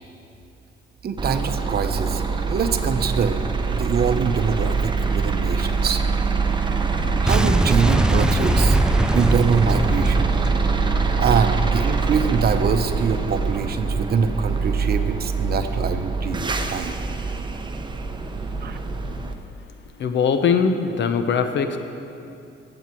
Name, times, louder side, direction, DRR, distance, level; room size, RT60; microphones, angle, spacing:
voice 1, 1.0-2.2 2.5-3.4 3.7-6.0 7.2-8.8 9.1-10.3 11.2-17.0 18.6-18.8, right 6 dB, 50° right, 8 dB, 0.9 m, -24 dB
sound 1, 1.2-19.3, right 4 dB, 25° right, 0.9 m, -24 dB
Boom, 7.3-12.2, right 1 dB, 5° right, 0.3 m, -23 dB
voice 2, 20.0-21.8, left 6 dB, 65° left, 7 dB, 1.0 m, -21 dB
20.5 x 8.1 x 4.6 m, 2.7 s
cardioid pair, 90°, 20 cm